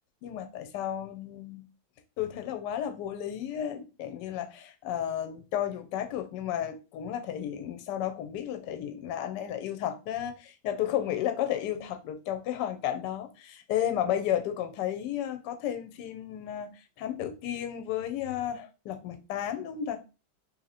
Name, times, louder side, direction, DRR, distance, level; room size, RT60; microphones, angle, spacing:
voice 1, 0.2-1.6 2.2-20.0, left 10 dB, 70° left, 1.1 m, -33 dB
2.9 x 2.8 x 4.0 m
omnidirectional pair, 2.1 m